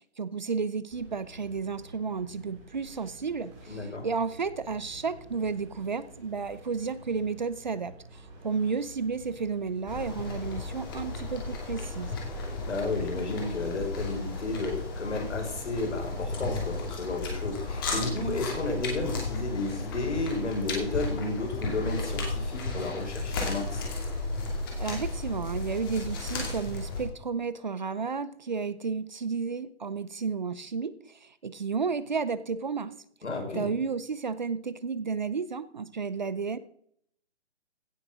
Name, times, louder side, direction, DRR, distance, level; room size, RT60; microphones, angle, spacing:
voice 1, 0.2-12.1 24.8-32.9 33.5-36.6, right 5 dB, 40° right, 16 dB, 0.6 m, -32 dB
sound 1, 0.9-20.4, left 1 dB, 5° right, 0.8 m, -47 dB
voice 2, 3.7-4.1 12.6-23.9 33.2-33.7, left 2 dB, 80° left, 2 dB, 5.9 m, -32 dB
sound 2, 9.9-27.0, left 3 dB, 20° left, 2.3 m, -34 dB
16.5 x 6.6 x 6.3 m, 0.66 s
hypercardioid pair, 170°, 35 cm